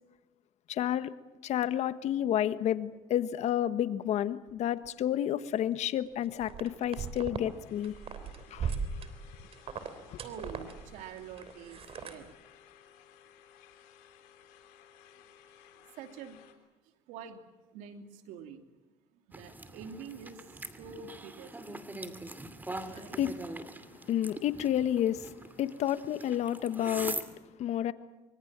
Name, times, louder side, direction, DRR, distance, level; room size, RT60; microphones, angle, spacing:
voice 1, 0.7-1.1 1.4-7.9 8.5-8.7 10.1-10.2 22.8-23.3 24.1-25.3 25.6-27.2 27.6-27.9, left 11 dB, 60° left, 1.4 m, -30 dB
sound 1, 6.4-7.5 7.8-12.3, right 6 dB, 50° right, 3.3 m, -38 dB
sound 2, 7.4-16.5, left 9 dB, 85° left, 3.6 m, -58 dB
voice 2, 10.2-12.3 16.0-16.4 17.1-17.4 17.7-18.6 19.3-20.4 20.8-21.8 22.8-23.2, right 7 dB, 80° right, 2.8 m, -46 dB
sound 3, 19.3-27.3, right 2 dB, 15° right, 2.6 m, -43 dB
25.0 x 24.0 x 7.5 m
supercardioid pair, 90°, 13 cm